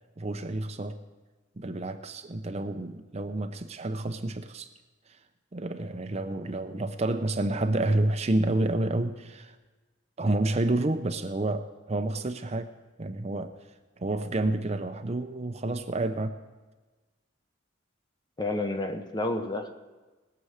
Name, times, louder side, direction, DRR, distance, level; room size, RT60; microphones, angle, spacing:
voice 1, 0.2-1.0 1.6-4.7 5.1-5.2 5.5-9.6 10.2-12.7 13.0-13.6 14.0-16.4, right 2 dB, 35° right, 8 dB, 0.6 m, -29 dB
voice 2, 18.4-19.7, left 2 dB, 20° left, 6 dB, 1.0 m, -30 dB
20.0 x 6.9 x 6.4 m, 1.2 s
head